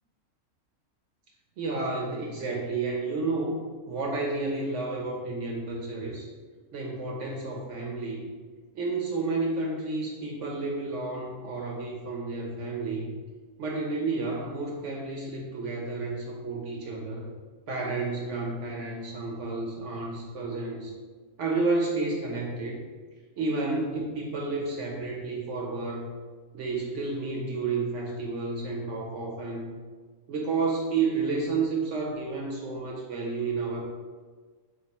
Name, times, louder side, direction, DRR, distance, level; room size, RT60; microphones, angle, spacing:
voice 1, 1.6-6.3 6.7-8.3 8.7-13.1 13.6-17.3 17.7-20.9 21.4-22.8 23.4-26.1 26.5-29.7 30.3-33.8, right 3 dB, 65° right, -1 dB, 0.8 m, -31 dB
3.5 x 2.6 x 4.0 m, 1.4 s
omnidirectional pair, 1.5 m